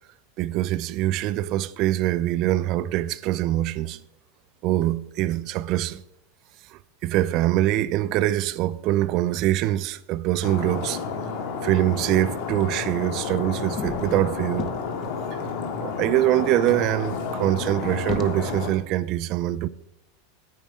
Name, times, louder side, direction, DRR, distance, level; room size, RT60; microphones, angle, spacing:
voice 1, 0.4-4.0 4.6-6.0 7.0-11.0 11.6-14.7 15.3-15.4 15.8-19.7, right 14 dB, 50° right, 0.5 m, -24 dB
Stream, 10.4-18.7, left 5 dB, 65° left, 2.0 m, -31 dB
sound 1, 13.7-15.3 15.8-15.9 16.1-16.2 16.7-18.7, left 7 dB, 40° left, 0.8 m, -36 dB
8.8 x 8.6 x 4.7 m
supercardioid pair, 120°, 0 cm